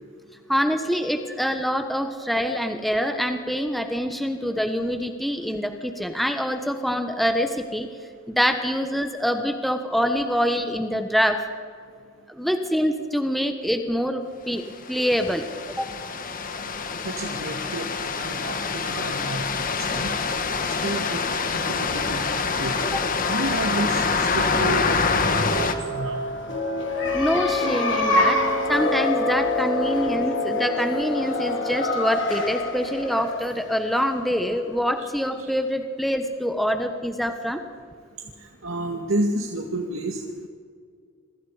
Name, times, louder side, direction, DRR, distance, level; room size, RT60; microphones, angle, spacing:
voice 1, 0.5-7.9 8.3-11.4 12.3-15.9 22.9-23.0 27.1-28.4 28.7-37.6, equal, ahead, 6 dB, 1.3 m, -25 dB
sound 1, 14.8-25.7, left 4 dB, 45° left, 1.6 m, -26 dB
voice 2, 17.0-20.1 20.6-21.2 21.5-22.2 22.5-22.8 23.3-26.2 35.0-35.1 35.4-35.5 38.4-40.5, right 1 dB, 90° right, 1 dB, 2.3 m, -31 dB
sound 2, 25.2-34.7, left 2 dB, 65° left, 3.3 m, -26 dB
27.5 x 24.0 x 5.0 m, 2.1 s
head